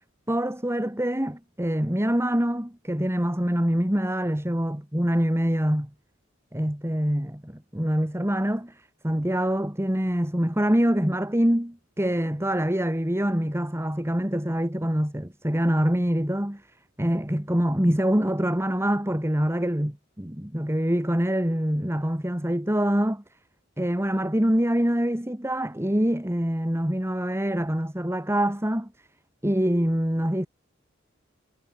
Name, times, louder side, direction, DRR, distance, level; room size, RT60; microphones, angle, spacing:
voice 1, 0.3-5.9 6.5-8.8 9.0-16.6 17.0-23.2 23.8-28.9 29.4-30.5, equal, 15° right, 2.3 m, -25 dB
head